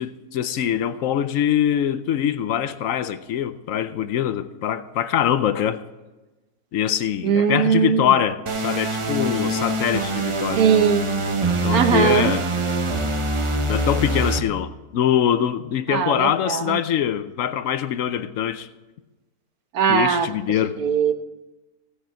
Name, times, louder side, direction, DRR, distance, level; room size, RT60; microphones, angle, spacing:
voice 1, 0.0-5.8 6.7-10.6 11.6-12.4 13.7-18.7 19.9-20.8, left 10 dB, 70° left, 0.9 m, -23 dB
voice 2, 7.2-8.2 10.6-11.1 11.7-12.4 15.9-16.8 19.7-20.3 20.8-21.1, right 7 dB, 75° right, 1.3 m, -20 dB
sound 1, 8.5-14.4, right 2 dB, 30° right, 0.6 m, -24 dB
15.5 x 8.2 x 4.5 m
omnidirectional pair, 1.6 m